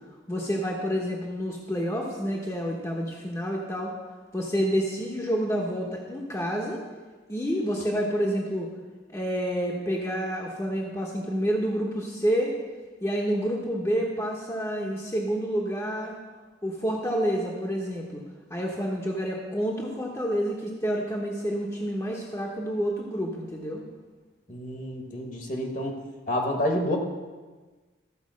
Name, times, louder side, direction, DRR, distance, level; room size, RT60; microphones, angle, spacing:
voice 1, 0.3-3.9 4.3-6.8 7.3-8.7 9.1-12.5 13.0-16.1 16.6-18.2 18.5-23.8, equal, 15° left, -2 dB, 1.0 m, -28 dB
voice 2, 24.5-25.9 26.3-27.0, left 1 dB, 45° left, 2 dB, 1.3 m, -28 dB
14.0 x 4.9 x 6.3 m, 1.3 s
head